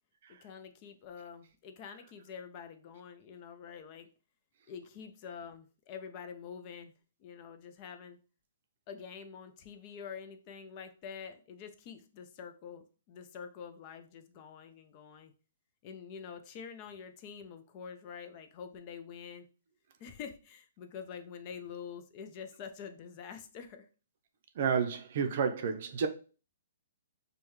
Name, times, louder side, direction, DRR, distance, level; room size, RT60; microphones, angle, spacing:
voice 1, 0.3-4.1 4.7-6.9 7.2-8.2 8.9-15.3 15.8-19.5 20.0-23.9, left 7 dB, 35° left, 0.5 m, -46 dB
voice 2, 24.6-26.1, right 6 dB, 55° right, 0.6 m, -31 dB
5.1 x 2.3 x 3.1 m
hypercardioid pair, 150°, 0 cm